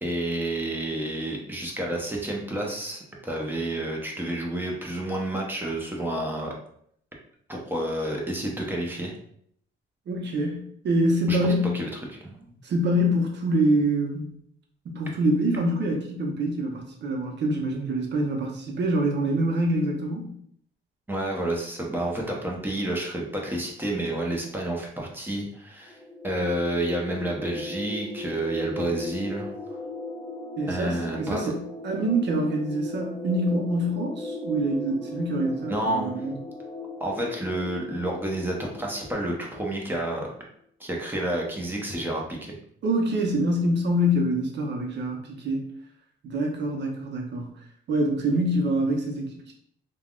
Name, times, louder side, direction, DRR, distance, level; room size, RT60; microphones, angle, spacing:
voice 1, 0.0-6.5 7.5-9.1 11.3-12.5 21.1-26.0 26.2-29.5 30.7-31.5 35.7-36.1 37.0-40.3 40.8-42.6, right 1 dB, 10° right, -1 dB, 0.8 m, -30 dB
voice 2, 10.1-11.8 12.6-14.3 14.8-20.3 30.6-36.4 42.8-45.6 46.2-47.5 47.9-49.5, right 1 dB, 60° right, 1 dB, 0.8 m, -25 dB
sound 1, 25.9-40.2, left 2 dB, 25° left, 0.8 m, -38 dB
3.3 x 2.3 x 2.4 m, 0.67 s
cardioid pair, 90°, 20 cm